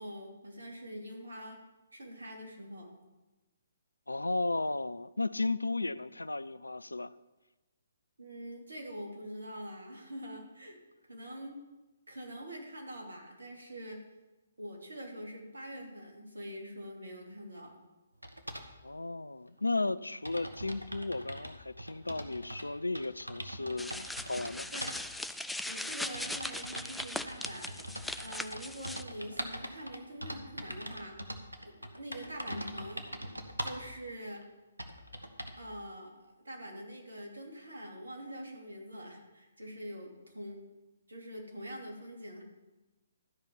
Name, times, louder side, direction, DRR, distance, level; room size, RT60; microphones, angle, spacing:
voice 1, 0.0-1.6 1.9-2.9 8.2-10.8 11.1-11.6 12.1-14.0 14.6-17.7 24.7-24.9 25.6-31.2 31.6-33.1 33.6-34.5 35.6-40.6 41.1-42.4, equal, 70° right, 3.0 m, -44 dB
voice 2, 4.1-7.1 18.8-24.7, left 2 dB, 80° left, 0.4 m, -34 dB
sound 1, 18.2-18.7 19.6-19.7 19.9-20.0 20.2-22.7 22.9-24.5 24.8-25.0 25.7-33.9 34.4-34.5 34.8-35.6, equal, 85° right, 1.2 m, -42 dB
sound 2, 23.8-29.0, left 1 dB, ahead, 0.4 m, -39 dB
13.0 x 5.6 x 7.1 m
figure-of-eight pair, 130°, 0 cm